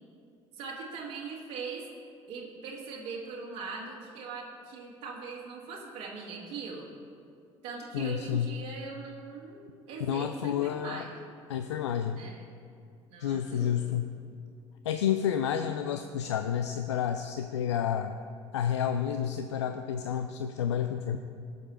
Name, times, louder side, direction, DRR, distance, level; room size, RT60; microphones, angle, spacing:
voice 1, 0.5-1.8 2.3-6.9 7.6-11.1 12.2-12.5 13.1-13.9, right 5 dB, 60° right, -3 dB, 2.1 m, -41 dB
voice 2, 7.9-8.5 10.0-11.1 11.5-12.2 13.2-14.1 14.8-18.2 18.5-21.2, left 9 dB, 70° left, 8 dB, 0.4 m, -30 dB
18.5 x 6.7 x 4.3 m, 2.4 s
figure-of-eight pair, 60°, 15 cm